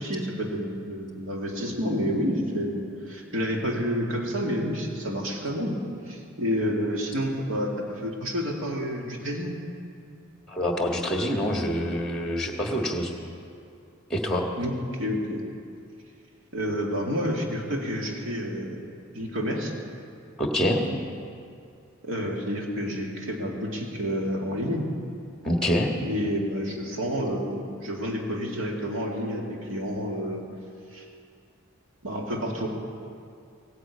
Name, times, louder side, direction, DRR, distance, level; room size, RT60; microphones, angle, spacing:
voice 1, 0.0-5.8 6.1-9.6 14.6-14.7 15.0-15.4 16.5-18.8 19.1-19.7 22.0-24.9 26.0-30.4 30.9-31.0 32.0-32.7, equal, 65° right, -1 dB, 2.4 m, -29 dB
voice 2, 10.5-13.1 14.1-14.5 20.4-20.8 25.4-25.9, equal, ahead, 1 dB, 1.5 m, -26 dB
17.5 x 9.7 x 8.4 m, 2.4 s
head